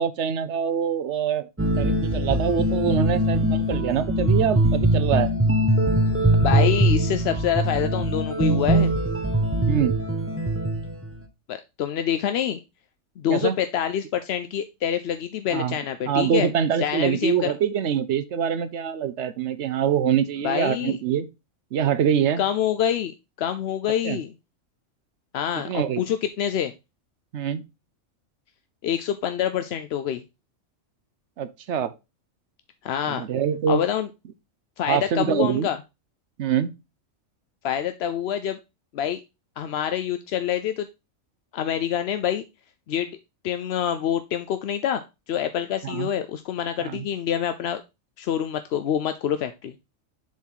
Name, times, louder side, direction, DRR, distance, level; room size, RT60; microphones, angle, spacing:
voice 1, 0.0-1.5 1.8-5.3 9.7-10.0 13.3-13.6 15.5-15.8 16.1-21.3 21.7-22.4 24.0-24.2 25.7-26.0 27.3-27.6 31.4-31.9 33.1-33.8 34.9-35.7 36.4-36.7 45.8-46.1 46.8-47.0, right 8 dB, 60° right, 0.9 m, -24 dB
sound 1, 1.6-11.2, right 1 dB, 15° right, 0.4 m, -22 dB
voice 2, 6.4-8.9 11.5-12.6 13.2-16.5 16.8-17.5 20.4-21.0 22.4-23.1 23.4-24.3 25.3-26.7 28.8-30.2 32.8-33.3 33.7-34.1 34.8-35.8 37.6-38.6 38.9-39.2 39.6-40.9 41.5-42.4 42.9-43.2 43.4-47.8 48.2-49.7, left 9 dB, 65° left, 0.7 m, -26 dB
7.2 x 3.9 x 4.5 m
omnidirectional pair, 1.4 m